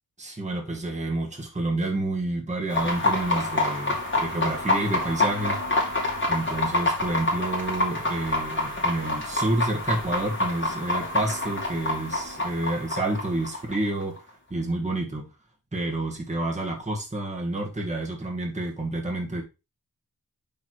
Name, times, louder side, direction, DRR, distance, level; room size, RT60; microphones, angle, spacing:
voice 1, 0.2-5.6 6.3-14.2 14.5-15.3 15.7-19.4, right 2 dB, 20° right, 1.8 m, -29 dB
sound 1, 2.7-14.2, left 2 dB, 35° left, 2.5 m, -27 dB
5.6 x 4.7 x 4.4 m
wide cardioid pair, 90°, 35 cm